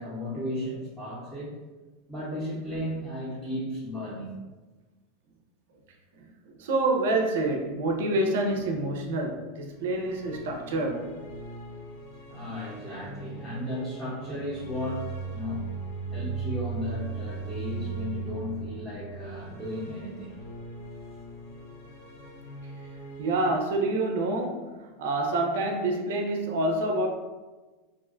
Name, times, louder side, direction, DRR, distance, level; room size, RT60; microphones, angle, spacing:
voice 1, 0.0-1.6 2.1-4.3 12.3-15.6 16.1-20.4 21.1-21.2, left 1 dB, 10° left, -10 dB, 0.7 m, -35 dB
voice 2, 6.5-11.1 23.2-27.1, right 2 dB, 80° right, 3 dB, 0.4 m, -27 dB
sound 1, 9.7-23.5, right 4 dB, 85° left, 0.5 m, -39 dB
2.4 x 2.1 x 2.4 m, 1.2 s
supercardioid pair, 140°, 0 cm